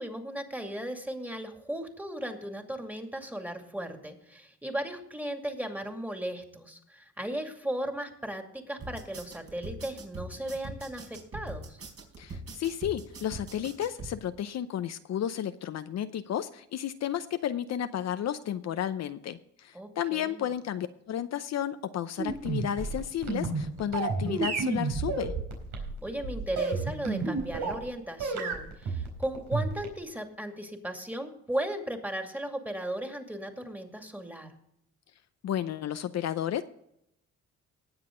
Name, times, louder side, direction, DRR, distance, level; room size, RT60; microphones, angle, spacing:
voice 1, 0.0-11.8 19.7-20.5 26.0-34.5, right 1 dB, 5° right, 4 dB, 2.4 m, -36 dB
sound 1, 8.8-14.1, right 2 dB, 50° right, 4.6 m, -42 dB
voice 2, 12.2-25.3 35.4-36.6, left 10 dB, 60° left, 10 dB, 0.7 m, -32 dB
sound 2, 22.2-27.9 28.2-30.0, right 4 dB, 80° right, 4.2 m, -31 dB
19.0 x 7.5 x 3.9 m, 0.75 s
cardioid pair, 90°, 30 cm